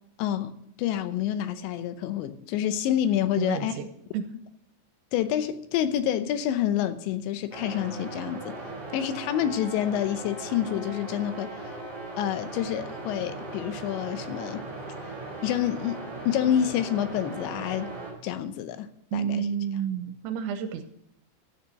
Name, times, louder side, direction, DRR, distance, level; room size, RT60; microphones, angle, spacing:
voice 1, 0.2-0.5 0.8-3.7 5.1-8.6 8.9-11.8 12.2-14.6 15.4-16.0 16.3-17.9 18.2-19.5, left 10 dB, 80° left, 10 dB, 3.0 m, -28 dB
voice 2, 3.4-3.9 4.1-4.2 19.1-20.8, right 8 dB, 85° right, 7 dB, 3.0 m, -30 dB
sound 1, 7.5-18.1, right 2 dB, 15° right, 3.3 m, -38 dB
12.5 x 6.8 x 7.6 m, 0.75 s
omnidirectional pair, 5.3 m